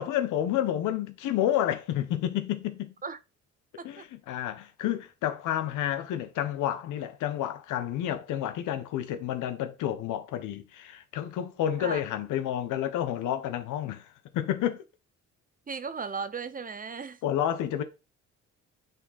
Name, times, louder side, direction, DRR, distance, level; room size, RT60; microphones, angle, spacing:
voice 1, 0.0-2.9 3.8-14.1 14.3-14.8 17.2-17.8, left 11 dB, 90° left, 1.0 m, -30 dB
voice 2, 15.7-17.2, right 5 dB, 30° right, 0.7 m, -36 dB
9.0 x 3.9 x 4.0 m
cardioid pair, 90°, 30 cm